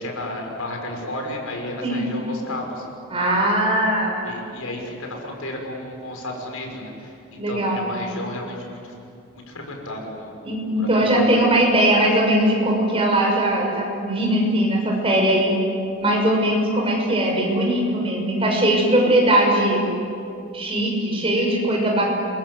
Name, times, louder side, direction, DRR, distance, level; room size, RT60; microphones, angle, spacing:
voice 1, 0.0-2.9 4.2-8.9 9.5-11.4, left 1 dB, 80° left, 1 dB, 5.8 m, -33 dB
voice 2, 3.1-4.2 7.4-7.8 10.4-15.6 16.0-19.9 20.5-22.1, right 1 dB, 25° right, -1 dB, 6.5 m, -20 dB
28.0 x 22.5 x 8.2 m, 2.5 s
head